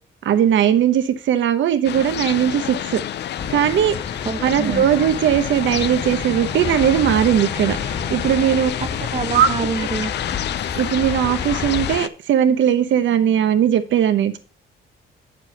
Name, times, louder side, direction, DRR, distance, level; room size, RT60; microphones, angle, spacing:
voice 1, 0.2-3.0 3.5-4.0 4.4-7.8 8.1-8.7 9.3-9.5 10.8-14.4, right 9 dB, 70° right, 10 dB, 1.0 m, -18 dB
sound 1, 1.8-12.1, left 11 dB, 60° left, 0.5 m, -29 dB
sound 2, 3.4-12.0, left 5 dB, 30° left, 0.8 m, -31 dB
voice 2, 4.2-4.9 8.8-10.1, right 4 dB, 30° right, 8 dB, 0.9 m, -26 dB
sound 3, 4.5-8.4, left 3 dB, 75° left, 1.5 m, -36 dB
8.3 x 6.8 x 4.2 m, 0.38 s
cardioid pair, 90°, 20 cm